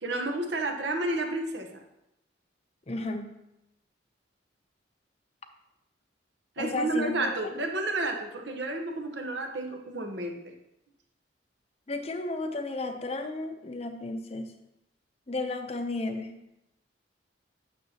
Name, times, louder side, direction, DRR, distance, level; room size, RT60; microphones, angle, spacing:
voice 1, 0.0-1.7 6.6-10.5, right 2 dB, 70° right, 3 dB, 1.0 m, -31 dB
voice 2, 2.9-3.4 6.6-7.1 11.9-14.5 15.3-16.3, left 2 dB, 35° left, 7 dB, 0.6 m, -33 dB
9.3 x 6.6 x 2.9 m, 0.87 s
head